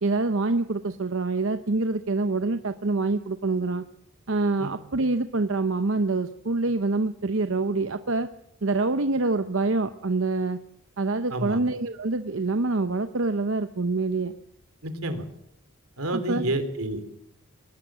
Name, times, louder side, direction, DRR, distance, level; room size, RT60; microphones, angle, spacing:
voice 1, 0.0-3.8 4.3-8.3 8.6-10.6 11.0-14.3 16.1-16.4, right 3 dB, 65° right, 9 dB, 0.8 m, -26 dB
voice 2, 11.3-11.6 14.8-15.3 16.0-17.1, right 1 dB, 90° right, 10 dB, 3.3 m, -29 dB
22.5 x 19.0 x 7.5 m, 0.79 s
head